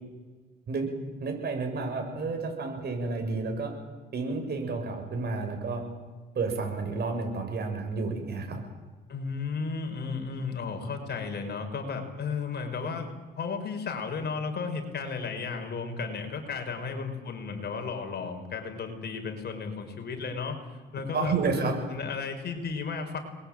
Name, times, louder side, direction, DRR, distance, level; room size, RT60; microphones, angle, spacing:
voice 1, 1.2-3.7 4.1-5.8 6.3-8.6 21.1-21.8, right 4 dB, 55° right, 4 dB, 7.4 m, -30 dB
voice 2, 9.1-13.1 13.4-23.2, left 5 dB, 55° left, 5 dB, 5.6 m, -34 dB
29.5 x 21.5 x 9.1 m, 1.4 s
cardioid pair, 90°, 20 cm